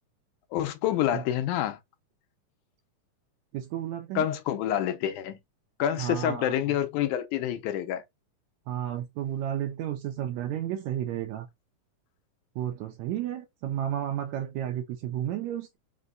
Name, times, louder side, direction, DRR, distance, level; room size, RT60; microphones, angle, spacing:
voice 1, 0.5-1.8 4.2-5.4 5.8-8.0, left 11 dB, 80° left, 2.1 m, -27 dB
voice 2, 3.5-4.3 6.0-6.8 8.7-11.5 12.6-15.8, right 11 dB, 80° right, 1.6 m, -32 dB
5.4 x 2.2 x 3.8 m
omnidirectional pair, 3.6 m